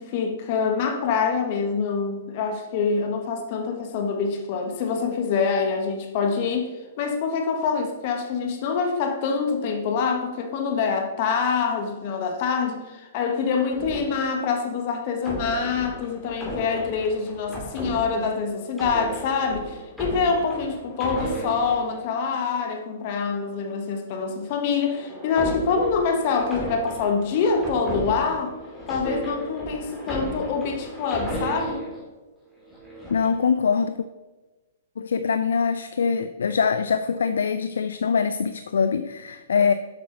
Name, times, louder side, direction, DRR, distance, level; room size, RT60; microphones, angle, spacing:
voice 1, 0.0-6.7 7.0-28.5 28.9-31.8, left 5 dB, 50° left, 1.2 m, -25 dB
sound 1, 13.7-14.6 15.2-22.5 24.4-32.0 32.6-33.4, right 1 dB, ahead, 2.5 m, -35 dB
voice 2, 33.1-34.0 35.0-39.7, left 6 dB, 80° left, 0.3 m, -23 dB
7.8 x 5.6 x 3.9 m
hypercardioid pair, 125°, 0 cm